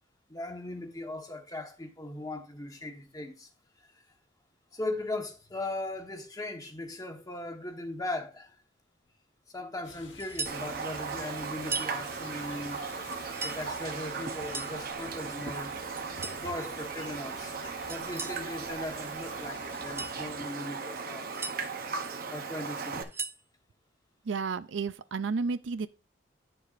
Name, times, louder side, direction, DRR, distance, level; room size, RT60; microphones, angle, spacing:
voice 1, 0.3-3.5 3.9-4.0 4.7-8.5 9.5-12.9 13.4-15.8 16.4-17.5 17.9-21.3 22.3-23.0, left 2 dB, 20° left, 1.2 m, -38 dB
sound 1, 9.8-20.4, left 3 dB, 75° left, 1.5 m, -51 dB
sound 2, 10.2-10.6 11.6-12.0 13.1-13.6 14.3-14.8 16.0-16.4 17.9-18.4 19.7-20.2 21.1-21.6 22.9-23.4, right 3 dB, 15° right, 0.4 m, -38 dB
Raindrop, 10.5-23.0, right 5 dB, 50° right, 0.8 m, -37 dB
voice 2, 24.3-25.9, right 4 dB, 80° right, 0.5 m, -32 dB
9.7 x 6.8 x 2.5 m
head